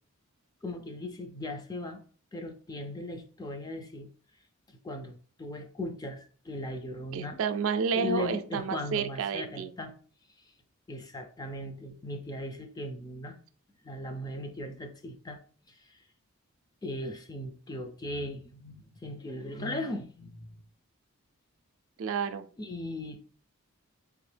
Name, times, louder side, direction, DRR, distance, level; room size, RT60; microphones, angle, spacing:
voice 1, 0.6-2.0 2.3-4.1 4.7-7.4 7.9-9.9 10.9-13.4 13.8-15.4 15.7-16.0 16.8-20.6 22.6-23.2, left 1 dB, 15° left, 5 dB, 0.4 m, -38 dB
voice 2, 7.1-9.7 22.0-22.4, right 6 dB, 65° right, 9 dB, 0.3 m, -30 dB
3.5 x 2.7 x 3.3 m, 0.44 s
head